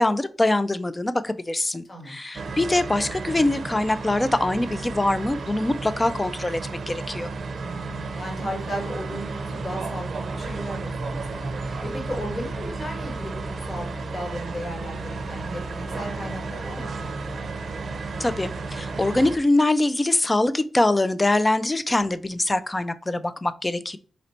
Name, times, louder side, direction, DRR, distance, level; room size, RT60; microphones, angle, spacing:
voice 1, 0.0-7.3 18.2-24.0, left 2 dB, 20° left, 0.3 m, -23 dB
sound 1, 2.3-19.4, right 3 dB, 65° right, 0.5 m, -33 dB
voice 2, 7.6-17.3, equal, 40° left, 1.6 m, -35 dB
4.2 x 2.6 x 4.2 m
wide cardioid pair, 110°, 0 cm